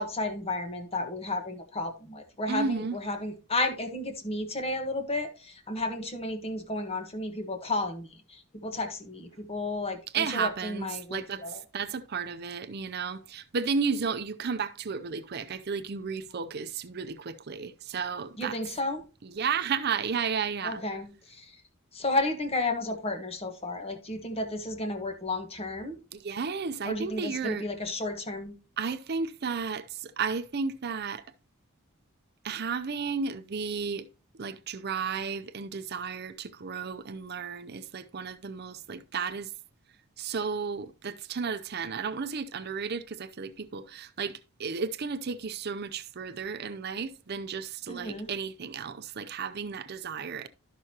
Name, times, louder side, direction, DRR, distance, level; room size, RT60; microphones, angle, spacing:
voice 1, 0.0-11.6 18.4-19.1 20.6-21.6 21.9-26.0 26.8-28.5 47.9-48.3, left 2 dB, 30° left, 1.3 m, -33 dB
voice 2, 2.5-3.0 10.1-18.6 19.2-20.8 26.1-27.6 28.8-31.2 32.4-34.1 34.4-39.5 40.2-50.5, right 5 dB, 50° right, 0.6 m, -33 dB
12.0 x 6.2 x 2.9 m
head